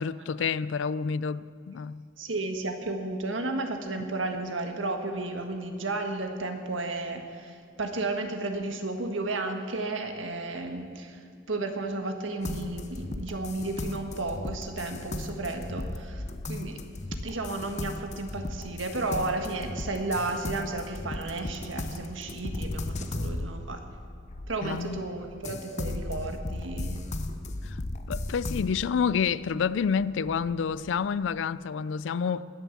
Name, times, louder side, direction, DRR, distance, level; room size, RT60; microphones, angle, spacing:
voice 1, 0.0-2.0 24.6-25.0 27.6-27.8 28.1-32.4, left 6 dB, 70° left, 0.4 m, -29 dB
voice 2, 2.2-11.2 11.5-16.8 17.2-23.8 24.5-27.0, right 2 dB, 85° right, 1.5 m, -33 dB
sound 1, 12.4-25.0 25.4-28.7, left 2 dB, 40° left, 0.7 m, -36 dB
Wind, 29.4-31.5, equal, 20° left, 4.1 m, -52 dB
20.0 x 7.1 x 7.3 m
head